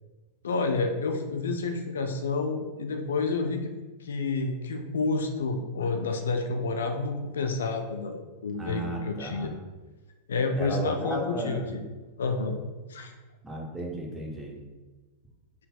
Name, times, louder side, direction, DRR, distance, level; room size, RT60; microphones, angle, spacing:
voice 1, 0.4-3.7 4.0-9.5 10.3-11.8 12.2-12.6 12.9-13.1, left 3 dB, 65° left, 5 dB, 0.4 m, -29 dB
voice 2, 8.6-9.5 10.6-11.8 13.4-14.6, right 1 dB, 10° right, 0 dB, 0.9 m, -34 dB
5.3 x 3.9 x 2.3 m, 1.2 s
figure-of-eight pair, 90°, 0 cm